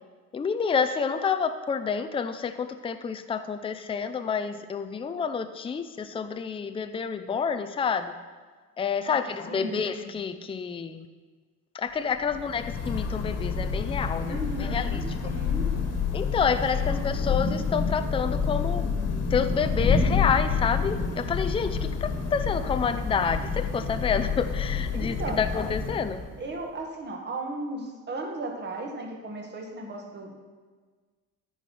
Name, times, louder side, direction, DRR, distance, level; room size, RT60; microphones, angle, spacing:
voice 1, 0.3-8.1 8.8-11.1 11.7-15.0 16.1-18.9 19.3-26.2, left 6 dB, 20° left, 10 dB, 0.4 m, -28 dB
voice 2, 9.5-9.8 14.2-15.9 16.7-17.0 24.9-25.4 26.4-30.3, right 2 dB, 35° right, 1 dB, 1.7 m, -36 dB
Thunder / Rain, 12.2-26.5, left 5 dB, 55° left, 1.5 m, -28 dB
14.0 x 4.7 x 5.6 m, 1.4 s
cardioid pair, 140°, 31 cm